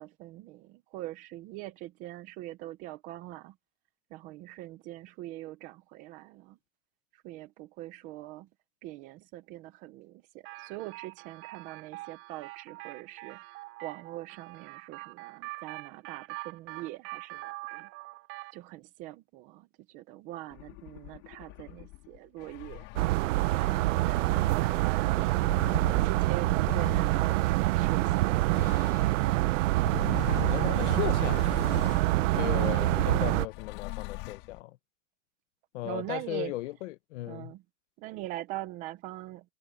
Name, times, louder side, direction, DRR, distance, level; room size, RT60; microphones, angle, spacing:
voice 1, 0.0-3.6 4.1-6.6 7.1-8.5 8.8-13.4 13.8-17.9 18.5-22.9 23.4-25.3 25.7-28.7 35.8-36.5 37.3-37.6 38.0-39.5, right 16 dB, 25° right, 0.4 m, -42 dB
sound 1, 10.4-18.6, right 22 dB, 40° right, 4.9 m, -44 dB
sound 2, 20.5-29.3 29.8-34.6, left 22 dB, 40° left, 3.2 m, -42 dB
sound 3, 23.0-33.5, right 18 dB, 85° right, 0.7 m, -26 dB
voice 2, 30.4-31.6 32.3-34.8 35.7-37.5, left 17 dB, 75° left, 1.1 m, -36 dB
supercardioid pair, 180°, 36 cm